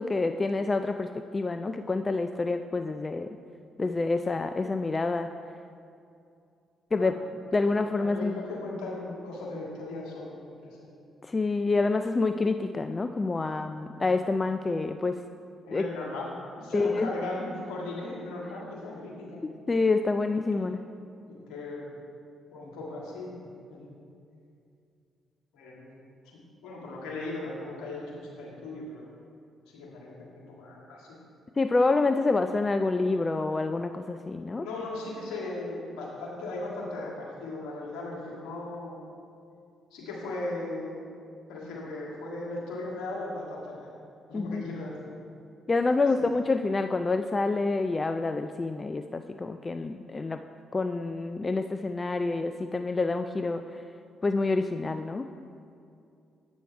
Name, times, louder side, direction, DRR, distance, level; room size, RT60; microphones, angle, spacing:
voice 1, 0.0-3.4 3.8-5.3 6.9-7.1 7.5-8.3 11.2-15.2 15.7-15.9 16.7-17.1 19.4-20.8 31.6-34.7 44.3-44.6 45.7-50.4 50.7-53.8 54.2-55.3, left 3 dB, 30° left, 8 dB, 0.3 m, -27 dB
voice 2, 7.6-10.9 15.7-16.3 16.6-19.4 21.3-21.9 22.5-23.4 23.7-23.9 25.5-26.0 26.2-29.1 29.7-31.2 34.6-39.1 39.9-41.1 41.5-43.9 44.3-44.9 46.2-46.3, left 2 dB, 75° left, -3 dB, 1.7 m, -37 dB
8.4 x 6.3 x 4.4 m, 2.5 s
hypercardioid pair, 45°, 0 cm